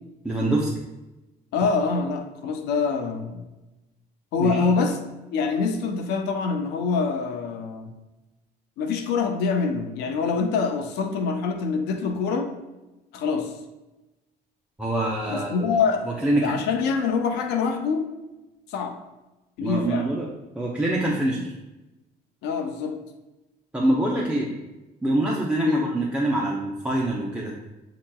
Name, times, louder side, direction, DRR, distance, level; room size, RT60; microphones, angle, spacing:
voice 1, 0.2-0.7 4.4-4.7 14.8-15.7 16.2-16.5 19.6-20.3 20.5-21.5 23.7-24.5 25.0-27.5, right 1 dB, 5° right, -4 dB, 0.6 m, -25 dB
voice 2, 1.5-3.5 4.3-5.0 5.3-7.9 8.8-12.5 13.1-13.5 15.3-18.1 18.7-19.0 19.6-20.1 22.4-23.0 25.7-25.8, left 5 dB, 90° left, 6 dB, 0.6 m, -25 dB
7.4 x 2.9 x 2.2 m, 1.0 s
cardioid pair, 110°, 17 cm